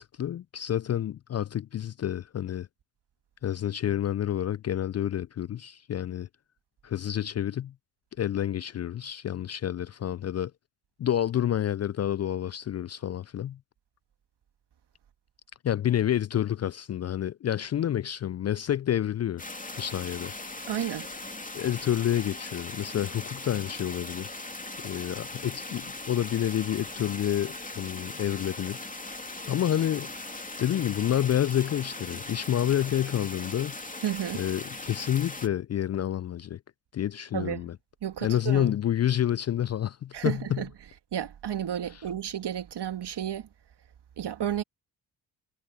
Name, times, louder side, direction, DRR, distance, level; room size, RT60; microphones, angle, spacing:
voice 1, 0.0-2.7 3.4-6.3 6.8-7.7 8.2-10.5 11.0-13.6 15.6-19.4 19.7-20.3 21.5-24.4 24.8-28.9 29.5-30.1 30.6-33.7 34.3-36.6 36.9-37.7 38.2-40.6, left 11 dB, 35° left, 0.5 m, -29 dB
Streamlet (strong), 19.4-35.5, left 2 dB, 15° left, 2.8 m, -39 dB
voice 2, 20.7-21.1 34.0-34.4 37.3-37.7 38.0-38.7 40.1-40.7 41.1-43.5 44.2-44.6, right 10 dB, 55° right, 2.4 m, -32 dB
hypercardioid pair, 40°, 47 cm